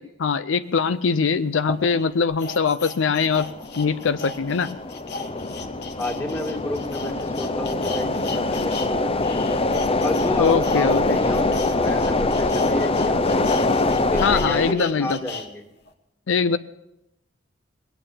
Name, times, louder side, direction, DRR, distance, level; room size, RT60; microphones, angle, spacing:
voice 1, 0.2-3.5 3.8-4.7 10.4-11.0 14.2-15.2 16.3-16.6, left 5 dB, 75° left, 12 dB, 0.5 m, -22 dB
sound 1, 0.8-0.9 1.5-8.9 9.2-15.5 15.9-16.0, left 3 dB, 60° left, 1.4 m, -36 dB
sound 2, 3.2-14.7, left 2 dB, 30° left, 0.6 m, -24 dB
voice 2, 6.0-9.5 10.0-13.7 14.1-15.6, left 1 dB, 15° left, 1 dB, 2.3 m, -30 dB
20.5 x 9.0 x 7.2 m, 0.86 s
head